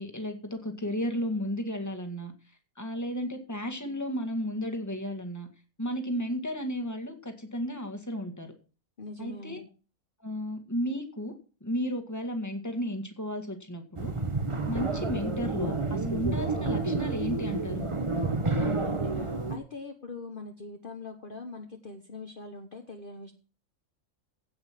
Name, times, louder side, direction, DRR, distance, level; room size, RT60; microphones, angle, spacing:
voice 1, 0.0-2.3 2.8-5.5 5.8-8.5 9.2-9.6 10.2-11.3 11.6-14.1 14.7-17.9, equal, 10° left, 5 dB, 1.8 m, -33 dB
voice 2, 9.0-9.7 18.6-23.3, left 3 dB, 40° left, 3 dB, 1.4 m, -42 dB
sound 1, 14.0-19.6, right 3 dB, 25° right, 1.1 m, -29 dB
16.5 x 5.7 x 5.9 m, 0.36 s
omnidirectional pair, 1.4 m